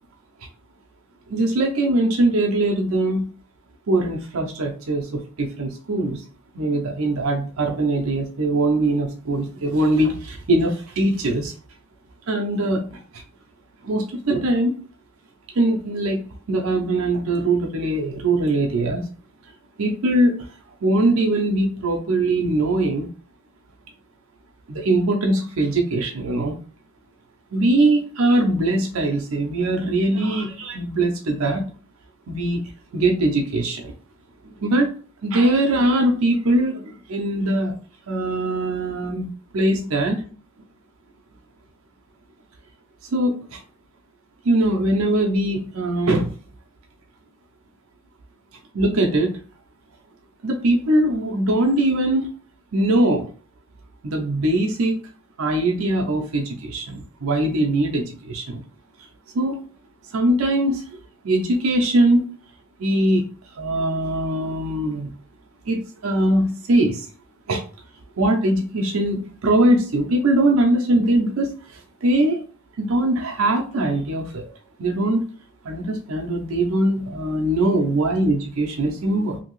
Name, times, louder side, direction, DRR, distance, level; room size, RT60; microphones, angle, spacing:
voice 1, 1.3-3.3 3.9-6.2 6.5-11.5 12.3-13.2 13.8-14.8 15.5-19.1 19.8-20.5 20.8-23.1 24.7-26.6 27.5-31.7 32.3-32.6 32.9-33.9 34.4-34.9 35.2-37.8 38.1-40.2 43.1-43.6 44.4-46.3 48.7-49.4 50.4-52.3 52.7-53.3 54.0-55.0 55.4-58.6 59.3-59.6 60.1-60.9 61.2-62.2 62.8-63.3 63.6-65.1 65.7-67.1 67.5-67.6 68.2-72.4 72.8-74.5 74.8-75.2 75.6-79.4, right 1 dB, 70° right, 1 dB, 0.6 m, -21 dB
2.8 x 2.6 x 3.0 m, 0.39 s
head